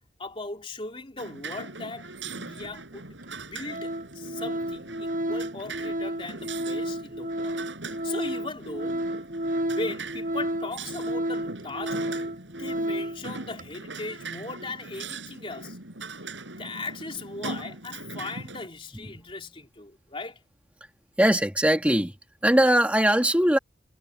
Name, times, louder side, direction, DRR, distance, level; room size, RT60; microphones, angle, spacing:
voice 1, 0.2-3.1 3.5-7.6 7.9-9.1 9.7-15.8 16.1-16.2 16.6-20.4, left 3 dB, 30° left, 3.6 m, -38 dB
sound 1, 1.2-18.7, right 3 dB, 80° right, 6.5 m, -41 dB
Organ, 2.6-2.7 3.2-3.4 3.7-13.2 13.6-13.7, right 1 dB, 45° right, 6.3 m, -31 dB
voice 2, 21.2-22.1 22.4-23.6, right 1 dB, 10° right, 1.7 m, -20 dB
head